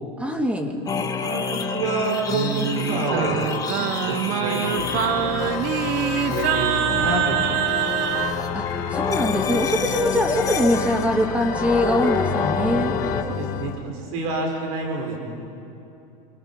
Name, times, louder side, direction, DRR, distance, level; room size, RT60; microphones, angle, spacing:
voice 1, 0.2-0.7 8.5-12.9, equal, 5° right, 4 dB, 2.5 m, -23 dB
sound 1, 0.9-13.2, left 5 dB, 20° left, 2.1 m, -28 dB
voice 2, 1.2-3.4 4.1-5.6 6.3-7.7 13.3-15.2, right 2 dB, 75° right, 1 dB, 4.4 m, -28 dB
Singing, 2.3-8.4, right 11 dB, 55° right, 1.1 m, -25 dB
Organ, 4.7-13.8, left 11 dB, 55° left, 1.2 m, -31 dB
28.5 x 25.5 x 5.4 m, 2.8 s
supercardioid pair, 125°, 18 cm